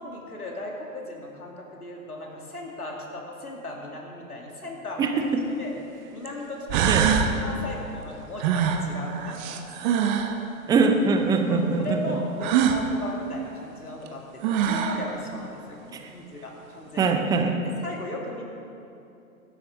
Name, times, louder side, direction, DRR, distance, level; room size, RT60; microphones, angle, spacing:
voice 1, 0.0-5.2 5.6-5.7 6.1-7.0 7.4-9.6 11.4-17.2 17.8-18.4, left 2 dB, 80° left, -1 dB, 2.4 m, -37 dB
voice 2, 5.0-5.4 6.9-7.1 10.7-12.2 15.9-16.0 17.0-17.6, right 4 dB, 10° right, 5 dB, 0.5 m, -23 dB
sound 1, 5.2-5.3 6.3-6.4 6.7-7.3 8.4-10.4 12.4-12.8 14.1-14.2 14.4-15.0, right 8 dB, 30° right, 1.0 m, -23 dB
20.5 x 12.0 x 3.7 m, 2.8 s
figure-of-eight pair, 110°, 44 cm